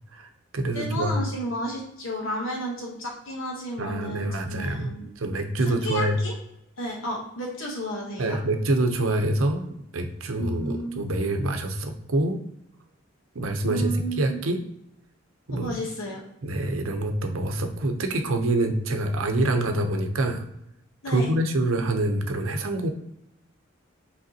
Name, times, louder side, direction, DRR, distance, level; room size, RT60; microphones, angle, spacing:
voice 1, 0.1-1.1 3.8-6.2 8.2-9.6 9.9-12.4 13.3-14.6 15.5-15.7 16.4-20.4 21.1-22.9, right 1 dB, 85° right, 6 dB, 0.7 m, -26 dB
voice 2, 0.7-5.1 5.8-6.3 6.8-8.4 10.4-11.3 13.6-14.4 15.5-16.2 21.0-21.3, equal, 75° left, -1 dB, 1.0 m, -32 dB
5.1 x 3.4 x 2.8 m, 0.80 s
head